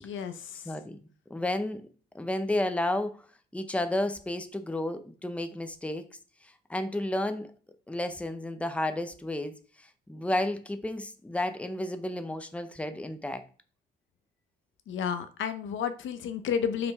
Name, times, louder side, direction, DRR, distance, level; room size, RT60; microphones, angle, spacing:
voice 1, 0.0-0.5 14.9-16.9, left 7 dB, 75° left, 0.8 m, -31 dB
voice 2, 0.6-1.0 1.3-1.8 2.1-3.2 3.5-6.1 6.7-7.5 7.9-9.5 10.1-13.4, left 1 dB, 5° left, 0.8 m, -31 dB
5.4 x 4.5 x 4.1 m
cardioid pair, 90°, 20 cm